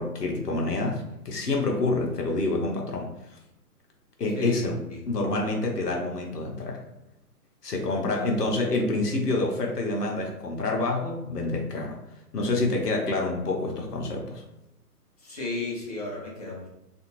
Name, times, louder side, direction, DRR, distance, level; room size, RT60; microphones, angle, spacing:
voice 1, 0.0-3.1 4.2-4.8 5.1-6.8 7.6-12.0 12.3-14.4, left 2 dB, 80° left, 0 dB, 0.8 m, -27 dB
voice 2, 4.3-5.0 8.1-8.4 15.2-16.7, left 2 dB, 25° left, -3 dB, 0.6 m, -35 dB
2.5 x 2.5 x 2.9 m, 0.89 s
figure-of-eight pair, 130°, 47 cm